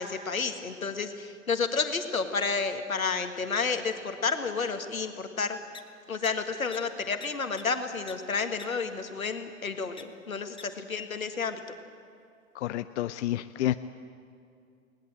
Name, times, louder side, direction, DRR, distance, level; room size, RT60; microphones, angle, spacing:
voice 1, 0.0-5.6 6.1-11.7, left 4 dB, 85° left, 7 dB, 1.7 m, -31 dB
sound 1, 5.7-5.8 6.2-6.3 6.7-6.8 7.2-7.3 7.6-7.7 8.1-8.2 8.6-8.7 10.0-10.1 10.6-10.7, left 6 dB, 10° left, 1.1 m, -43 dB
voice 2, 12.5-13.7, left 13 dB, 60° left, 12 dB, 0.7 m, -29 dB
21.0 x 19.0 x 7.9 m, 2.4 s
figure-of-eight pair, 95°, 40 cm